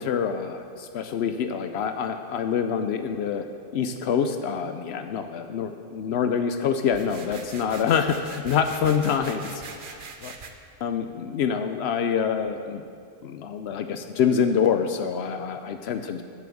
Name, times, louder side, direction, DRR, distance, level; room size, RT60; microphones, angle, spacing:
voice 1, 0.0-3.4 3.7-10.3 10.8-12.8 13.2-16.2, left 7 dB, 80° left, 8 dB, 0.9 m, -26 dB
sound 1, 6.9-10.5, right 4 dB, 55° right, 1.0 m, -42 dB
12.0 x 6.9 x 7.6 m, 2.3 s
omnidirectional pair, 1.1 m